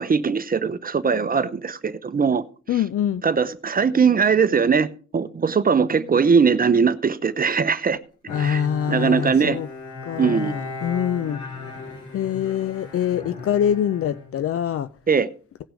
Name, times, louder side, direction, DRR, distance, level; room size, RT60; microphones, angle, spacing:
voice 1, 0.0-2.4 3.2-8.0 8.4-9.6 10.2-10.5 15.1-15.3, right 5 dB, 30° right, 0.8 m, -20 dB
voice 2, 2.7-3.2 8.3-9.7 10.1-11.4 12.1-14.9, left 9 dB, 50° left, 0.5 m, -24 dB
Bowed string instrument, 8.3-14.9, left 3 dB, 80° left, 4.7 m, -37 dB
17.0 x 6.0 x 5.0 m
cardioid pair, 90°, 30 cm